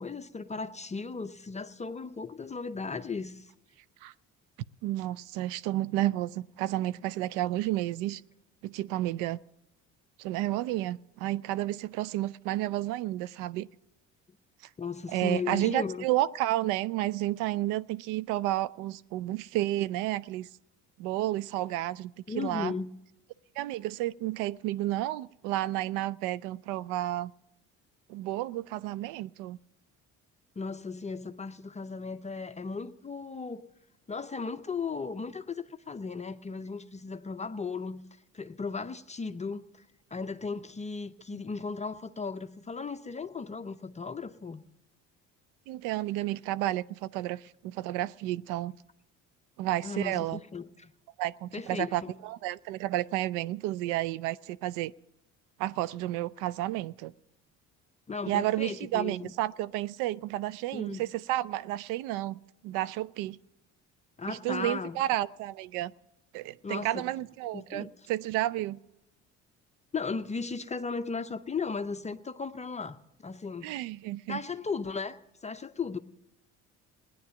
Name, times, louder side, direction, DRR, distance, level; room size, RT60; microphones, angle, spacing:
voice 1, 0.0-3.5 14.8-16.1 22.3-22.9 30.6-33.6 34.1-38.0 38.3-39.8 40.1-44.6 49.8-50.9 51.5-52.1 58.1-59.3 60.7-61.0 64.2-65.0 66.6-67.1 67.5-67.9 69.9-73.7 74.3-76.0, left 4 dB, 20° left, 0.7 m, -36 dB
voice 2, 4.8-8.2 8.6-9.4 10.2-13.7 15.1-20.5 21.0-22.7 23.6-27.3 28.1-29.6 41.3-41.4 45.7-48.8 49.6-50.4 51.2-54.9 55.6-57.1 58.3-63.4 64.3-65.9 66.3-68.8 73.6-74.4, right 15 dB, 85° right, 0.5 m, -31 dB
17.5 x 10.5 x 7.0 m
supercardioid pair, 85°, 31 cm